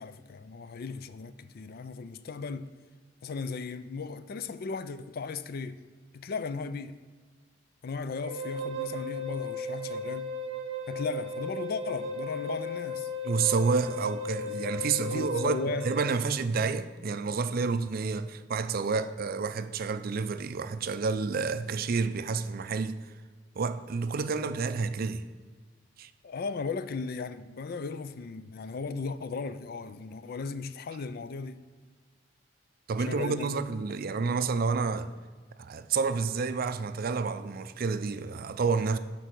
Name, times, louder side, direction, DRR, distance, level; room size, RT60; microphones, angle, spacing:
voice 1, 0.0-2.7 3.2-5.8 6.1-7.0 7.8-10.3 10.9-13.1 15.1-15.9 26.2-31.6 33.0-33.6, left 4 dB, 55° left, 0.4 m, -36 dB
Wind instrument woodwind instrument, 8.2-16.1, left 1 dB, 35° right, 1.1 m, -36 dB
voice 2, 13.2-15.6 15.8-23.0 23.6-25.2 26.0-26.1 32.9-35.1 35.6-39.0, right 4 dB, 50° right, 0.4 m, -29 dB
11.0 x 3.9 x 6.0 m
head